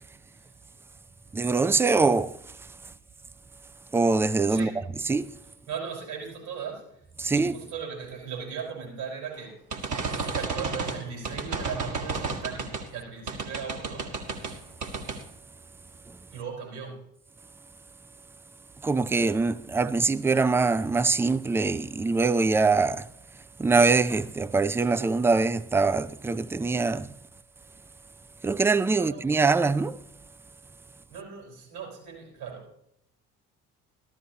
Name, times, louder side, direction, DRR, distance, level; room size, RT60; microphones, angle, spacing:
voice 1, 1.3-2.4 3.9-4.7 5.1-5.4 7.2-7.6 16.1-16.2 18.8-23.1 23.6-27.1 28.4-30.0, right 4 dB, 5° right, 0.3 m, -23 dB
voice 2, 5.7-7.0 7.3-9.6 10.3-14.1 16.3-17.0 29.0-29.2 31.1-32.7, right 6 dB, 65° right, 4.6 m, -38 dB
sound 1, 9.7-12.9 13.3-14.6 14.8-15.2, right 4 dB, 45° right, 1.7 m, -32 dB
14.0 x 13.0 x 2.9 m
figure-of-eight pair, 50°, 40 cm